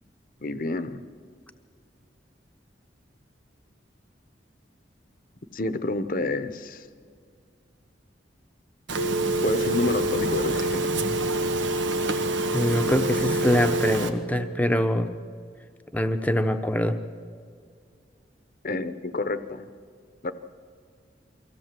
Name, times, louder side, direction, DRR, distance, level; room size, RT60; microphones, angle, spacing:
voice 1, 0.4-1.0 5.5-6.9 9.4-10.9 18.6-19.7 20.2-20.3, left 2 dB, 50° left, 12 dB, 0.9 m, -29 dB
Telephone, 8.9-14.1, right 2 dB, 85° right, 1.4 m, -26 dB
voice 2, 12.5-15.1 15.9-17.0, left 1 dB, 10° left, 7 dB, 0.9 m, -24 dB
23.5 x 16.5 x 7.6 m, 2.2 s
head